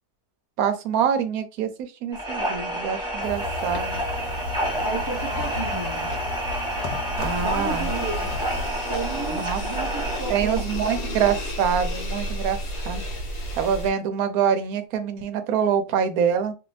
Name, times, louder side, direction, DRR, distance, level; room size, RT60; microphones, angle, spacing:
voice 1, 0.6-4.0 7.2-7.9 9.3-9.6 10.3-13.0 13.5-16.5, right 7 dB, 70° right, 8 dB, 1.0 m, -25 dB
sound 1, 2.1-11.1, right 1 dB, 5° right, 0.9 m, -29 dB
sound 2, 3.2-8.7, left 4 dB, 85° left, 1.2 m, -35 dB
voice 2, 4.8-6.1 7.4-8.3 8.9-10.6 10.9-11.1, right 3 dB, 35° right, -2 dB, 0.3 m, -32 dB
sound 3, 7.2-13.9, equal, 60° left, 1.2 m, -31 dB
2.7 x 2.5 x 3.1 m, 0.30 s
omnidirectional pair, 1.7 m